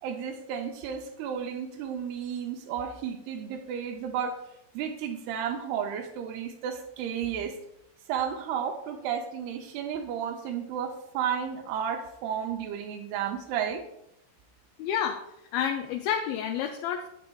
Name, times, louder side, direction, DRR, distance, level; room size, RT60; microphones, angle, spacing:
voice 1, 0.0-4.4 4.7-7.6 8.1-13.8, right 8 dB, 90° right, 3 dB, 2.6 m, -32 dB
voice 2, 14.8-15.2 15.5-17.1, left 8 dB, 80° left, 4 dB, 2.3 m, -29 dB
10.0 x 7.6 x 2.3 m, 0.81 s
omnidirectional pair, 4.5 m